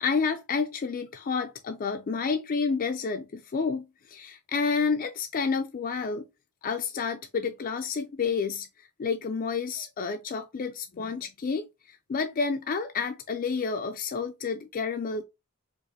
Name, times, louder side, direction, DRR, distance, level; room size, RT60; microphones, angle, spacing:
voice 1, 0.0-6.2 6.6-8.7 9.0-15.2, left 5 dB, 40° left, 0.4 m, -30 dB
4.7 x 2.5 x 2.7 m
head